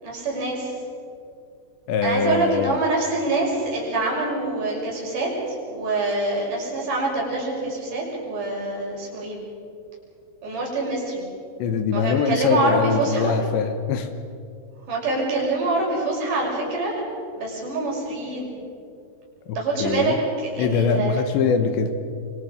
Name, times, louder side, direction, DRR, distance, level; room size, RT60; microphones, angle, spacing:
voice 1, 0.0-0.8 2.0-9.4 10.4-11.3 11.9-13.3 14.9-17.0 17.3-18.5 19.6-21.2, right 2 dB, 45° right, -3 dB, 7.2 m, -25 dB
voice 2, 1.9-2.8 11.6-14.1 19.5-20.2 20.6-21.9, left 5 dB, 75° left, 8 dB, 3.3 m, -23 dB
27.5 x 24.5 x 5.4 m, 2.4 s
omnidirectional pair, 5.4 m